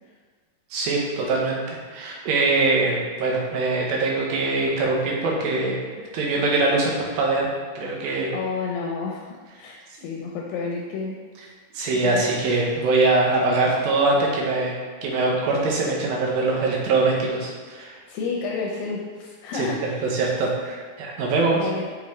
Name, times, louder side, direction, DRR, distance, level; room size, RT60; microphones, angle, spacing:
voice 1, 0.7-7.5 7.8-8.3 11.7-18.0 19.5-19.7 20.1-21.6, right 3 dB, 75° right, -2 dB, 2.6 m, -23 dB
voice 2, 8.3-11.5 12.0-12.2 18.1-20.1 21.5-21.9, left 4 dB, 80° left, -1 dB, 2.2 m, -31 dB
5.8 x 5.3 x 3.1 m, 1.5 s
omnidirectional pair, 4.3 m